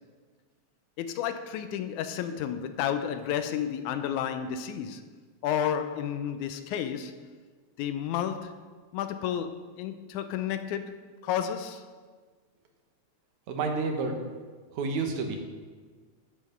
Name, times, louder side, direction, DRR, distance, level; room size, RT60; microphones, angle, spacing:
voice 1, 1.0-5.1 5.4-7.2 7.8-8.6 8.9-11.8, left 9 dB, 85° left, 2.1 m, -31 dB
voice 2, 13.5-14.2 14.7-15.4, right 4 dB, 75° right, 2.4 m, -29 dB
11.0 x 5.8 x 5.3 m
omnidirectional pair, 3.4 m